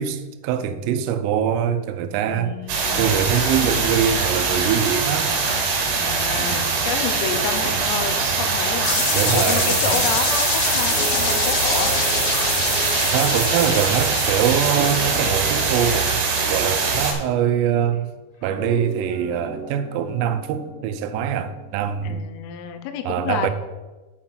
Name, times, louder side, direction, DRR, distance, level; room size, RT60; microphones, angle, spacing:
voice 1, 0.0-2.6 3.0-5.3 6.3-6.7 9.1-10.0 13.1-18.1 18.4-22.2 23.1-23.5, right 9 dB, 85° right, 3.2 m, -23 dB
voice 2, 2.3-3.2 5.9-11.9 22.0-23.5, left 7 dB, 85° left, 3.4 m, -29 dB
sound 1, 2.7-17.1, right 4 dB, 65° right, 3.1 m, -22 dB
sound 2, 8.8-16.6, left 5 dB, 70° left, 3.4 m, -26 dB
Guitar, 10.8-18.0 18.4-22.1, left 1 dB, 45° left, 3.0 m, -37 dB
8.1 x 6.1 x 5.8 m
omnidirectional pair, 5.9 m